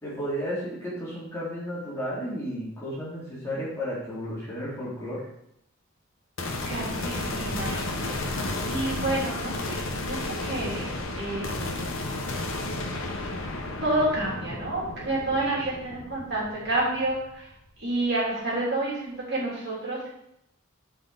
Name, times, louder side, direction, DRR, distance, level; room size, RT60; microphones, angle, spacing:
voice 1, 0.0-5.2, equal, 15° left, -8 dB, 2.9 m, -33 dB
sound 1, 6.4-17.7, left 2 dB, 75° left, 1.2 m, -33 dB
voice 2, 6.6-8.1 8.7-11.8 13.8-17.5 17.8-20.1, right 2 dB, 55° right, -6 dB, 3.2 m, -29 dB
9.4 x 5.0 x 4.0 m, 0.78 s
head